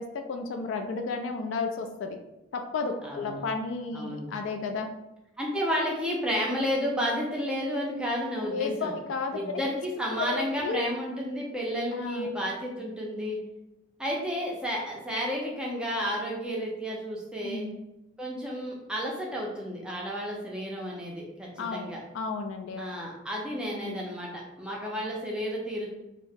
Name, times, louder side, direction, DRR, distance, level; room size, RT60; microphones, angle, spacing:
voice 1, 0.0-2.2 2.5-4.9 8.5-9.6 10.1-10.8 11.9-12.3 17.4-17.7 21.6-22.9 23.7-24.0 24.8-24.9, left 4 dB, 70° left, 5 dB, 0.3 m, -33 dB
voice 2, 3.0-3.4 3.9-4.3 5.4-8.9 9.3-13.4 14.0-17.6 18.2-22.0 22.8-25.9, equal, 5° right, -3 dB, 0.4 m, -31 dB
2.7 x 2.0 x 3.4 m, 0.94 s
head